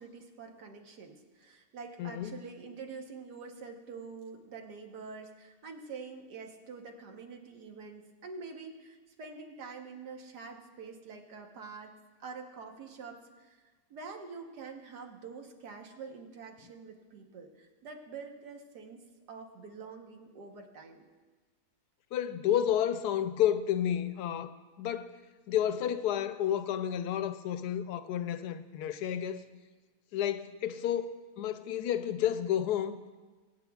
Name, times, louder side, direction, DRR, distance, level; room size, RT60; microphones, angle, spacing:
voice 1, 0.0-11.9 12.2-13.6 13.9-21.1, right 4 dB, 90° right, 1.7 m, -46 dB
voice 2, 2.0-2.4 22.1-25.2 25.5-29.4 30.1-33.0, left 10 dB, 85° left, 1.1 m, -31 dB
24.0 x 8.1 x 2.3 m
omnidirectional pair, 1.7 m